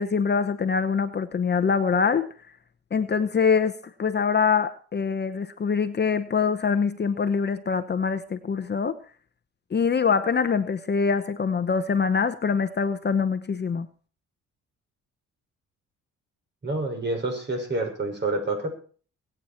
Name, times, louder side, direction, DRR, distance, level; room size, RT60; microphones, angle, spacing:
voice 1, 0.0-2.3 2.9-8.9 9.7-13.9, left 5 dB, 35° left, 10 dB, 1.0 m, -24 dB
voice 2, 16.6-18.8, right 2 dB, 35° right, 4 dB, 6.0 m, -28 dB
23.5 x 9.1 x 4.4 m, 0.42 s
cardioid pair, 90°, 30 cm